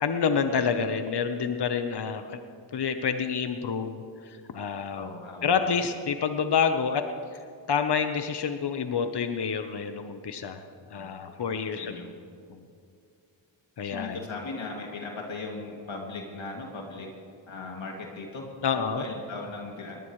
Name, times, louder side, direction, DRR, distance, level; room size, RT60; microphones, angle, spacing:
voice 1, 0.0-2.4 2.7-5.1 5.4-7.0 7.7-10.6 10.9-12.0 12.5-12.6 13.8-14.2 18.6-19.0, left 6 dB, 60° left, 7 dB, 1.1 m, -28 dB
voice 2, 5.0-5.6 10.9-11.2 11.7-12.1 13.8-17.1 17.5-18.5 18.8-20.0, left 3 dB, 80° left, -1 dB, 2.8 m, -38 dB
21.5 x 18.5 x 3.3 m, 2.4 s
cardioid pair, 65°, 45 cm